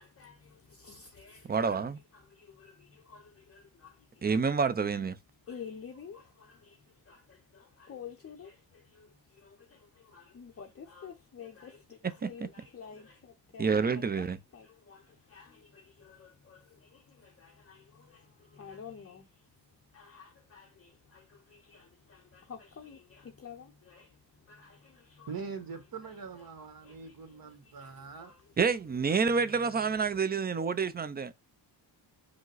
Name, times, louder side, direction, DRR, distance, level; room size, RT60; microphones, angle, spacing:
voice 1, 0.0-1.8 2.1-4.2 4.9-5.0 5.5-19.5 19.9-25.3 26.0-26.4 26.8-28.6 29.2-29.7, left 6 dB, 30° left, 0.6 m, -51 dB
voice 2, 1.5-2.0 4.2-5.2 12.2-12.5 13.6-14.4 28.6-31.3, right 5 dB, 25° right, 0.4 m, -28 dB
voice 3, 25.3-28.3, right 5 dB, 50° right, 1.1 m, -43 dB
4.9 x 2.1 x 3.9 m
wide cardioid pair, 125°, 45 cm